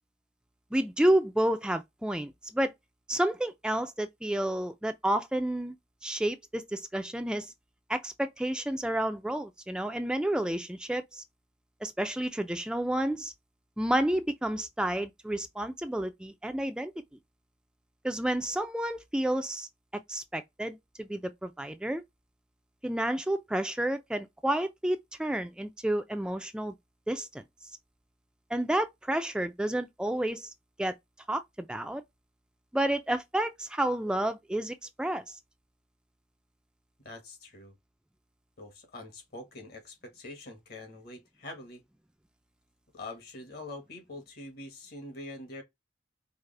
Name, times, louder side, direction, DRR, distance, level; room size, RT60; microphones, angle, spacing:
voice 1, 0.7-2.7 3.1-5.7 6.0-7.5 7.9-11.2 11.8-13.3 13.8-16.9 18.0-19.7 20.1-22.0 22.8-26.7 27.1-27.4 28.5-30.5 30.8-30.9 31.3-32.0 32.7-35.4, right 1 dB, 5° right, 0.3 m, -30 dB
voice 2, 37.0-37.7 38.6-41.8 42.9-45.6, left 2 dB, 60° left, 1.5 m, -44 dB
4.8 x 2.1 x 3.2 m
head